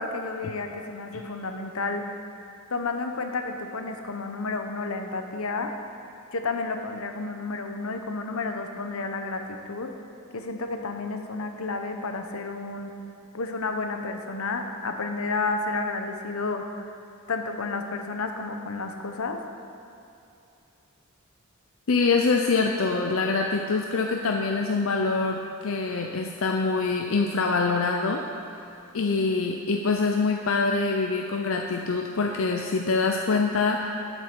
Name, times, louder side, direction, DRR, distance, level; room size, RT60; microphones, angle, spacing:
voice 1, 0.0-2.1 2.7-5.7 6.3-9.9 10.3-12.9 13.3-16.9 17.3-19.4, left 3 dB, 85° left, 5 dB, 0.9 m, -31 dB
voice 2, 21.9-28.2 28.9-33.9, left 4 dB, 70° left, 2 dB, 0.6 m, -25 dB
12.5 x 7.6 x 4.6 m, 2.8 s
head